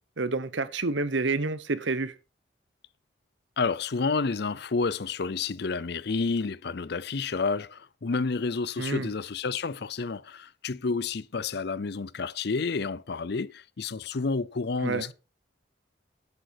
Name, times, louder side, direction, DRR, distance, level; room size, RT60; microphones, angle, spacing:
voice 1, 0.2-2.1 8.8-9.1 14.8-15.1, right 3 dB, 70° right, 1.0 m, -28 dB
voice 2, 3.6-15.1, left 4 dB, 55° left, 0.6 m, -30 dB
11.5 x 8.4 x 4.6 m
head